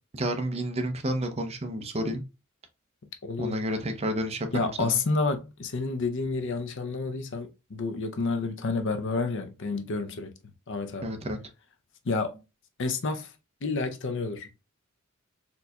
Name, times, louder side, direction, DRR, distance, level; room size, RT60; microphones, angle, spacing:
voice 1, 0.1-2.2 3.4-5.0 11.0-11.4, right 1 dB, 30° right, 0.6 m, -30 dB
voice 2, 3.2-3.6 4.5-10.3 10.7-11.1 12.0-12.4 12.8-13.3 13.6-14.5, left 3 dB, 60° left, 0.6 m, -29 dB
4.3 x 2.7 x 2.2 m
head